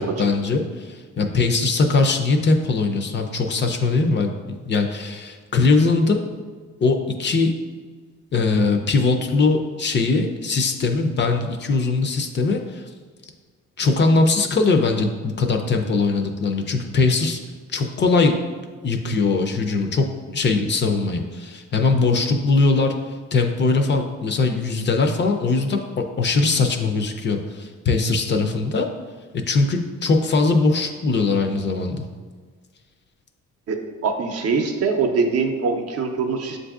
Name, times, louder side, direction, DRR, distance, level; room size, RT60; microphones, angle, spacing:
voice 1, 0.0-6.2 6.8-7.5 8.3-12.9 13.8-17.4 17.7-18.4 18.8-25.8 26.2-28.9 29.5-32.0, left 3 dB, 40° left, 4 dB, 0.4 m, -21 dB
voice 2, 33.7-36.6, right 4 dB, 55° right, 5 dB, 0.6 m, -23 dB
7.1 x 2.6 x 2.3 m, 1.5 s
cardioid pair, 90°, 30 cm